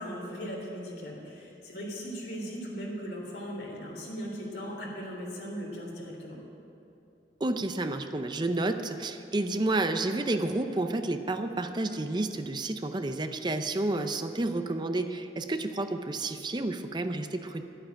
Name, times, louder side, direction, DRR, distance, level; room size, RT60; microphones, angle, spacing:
voice 1, 0.0-6.4, equal, 80° left, -2 dB, 3.5 m, -38 dB
voice 2, 7.4-17.6, right 2 dB, 25° right, 8 dB, 0.5 m, -30 dB
11.5 x 8.8 x 9.2 m, 2.8 s
head